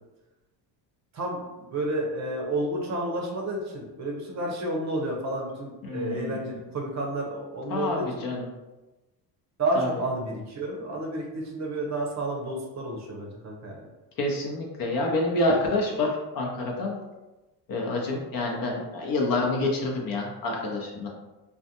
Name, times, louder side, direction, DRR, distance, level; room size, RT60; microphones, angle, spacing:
voice 1, 1.1-8.0 9.6-13.9, right 1 dB, 35° right, 0 dB, 0.7 m, -31 dB
voice 2, 5.9-6.5 7.7-8.5 9.8-9.9 14.2-17.0 17.7-21.1, left 2 dB, 45° left, -1 dB, 0.7 m, -27 dB
2.3 x 2.2 x 2.8 m, 1.1 s
supercardioid pair, 70°, 48 cm